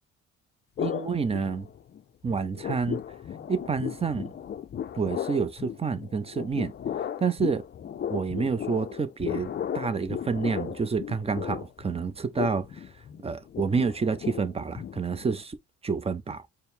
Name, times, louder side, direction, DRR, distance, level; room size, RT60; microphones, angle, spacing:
sound 1, 0.8-2.0 2.3-15.4, left 9 dB, 35° left, 0.4 m, -35 dB
voice 1, 0.8-1.7 2.2-3.0 3.5-4.3 5.0-6.7 7.2-7.6 8.1-12.7 13.2-15.6 15.8-16.4, right 5 dB, 20° right, 0.5 m, -28 dB
4.4 x 2.1 x 3.6 m
cardioid pair, 90°, 30 cm